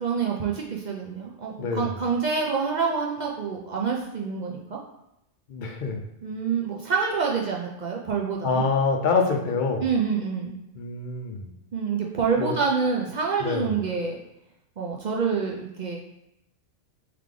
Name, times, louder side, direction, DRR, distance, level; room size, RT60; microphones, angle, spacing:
voice 1, 0.0-4.8 6.2-8.6 9.8-10.6 11.7-14.2 14.8-16.0, right 5 dB, 60° right, -1 dB, 0.5 m, -27 dB
voice 2, 1.6-1.9 5.5-6.0 8.4-9.9 10.7-11.5 12.4-12.5 13.4-13.7, left 4 dB, 55° left, 3 dB, 0.6 m, -25 dB
3.4 x 3.2 x 3.7 m, 0.85 s
omnidirectional pair, 1.3 m